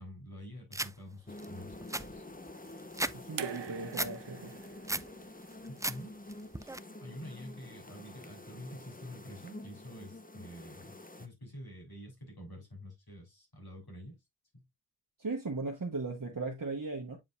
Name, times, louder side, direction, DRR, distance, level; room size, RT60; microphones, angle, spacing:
voice 1, 0.0-2.2 5.9-6.1 6.6-6.7 7.0-10.9 11.2-14.2 14.5-14.6, equal, 65° left, 3.9 m, -48 dB
sound 1, 0.7-0.9 1.4-1.5 1.7-3.2 3.5-4.1 4.5-5.1 5.5-6.0 6.3-6.8, right 2 dB, 10° right, 0.4 m, -35 dB
sound 2, 1.3-11.3, left 2 dB, 20° left, 0.9 m, -48 dB
voice 2, 3.1-4.5 15.2-17.2, right 3 dB, 55° right, 1.3 m, -37 dB
sound 3, 3.4-6.5 7.7-7.8, right 8 dB, 85° right, 0.7 m, -45 dB
8.7 x 5.1 x 2.4 m
wide cardioid pair, 45°, 41 cm